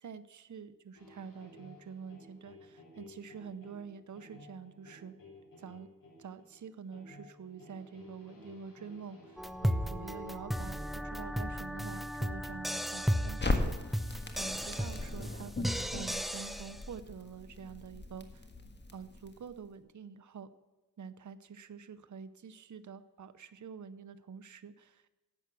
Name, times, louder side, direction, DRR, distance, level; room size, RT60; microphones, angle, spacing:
voice 1, 0.0-5.1 5.6-5.9 6.2-18.5 18.9-20.5 21.0-25.2, right 6 dB, 60° right, 12 dB, 0.7 m, -47 dB
sound 1, 0.9-9.9, left 1 dB, 85° left, 3.4 m, -55 dB
sound 2, 9.4-16.8, equal, ahead, 0.6 m, -35 dB
Crackle, 13.4-19.5, left 2 dB, 30° left, 1.6 m, -38 dB
11.5 x 8.0 x 6.1 m, 1.2 s
wide cardioid pair, 70°, 33 cm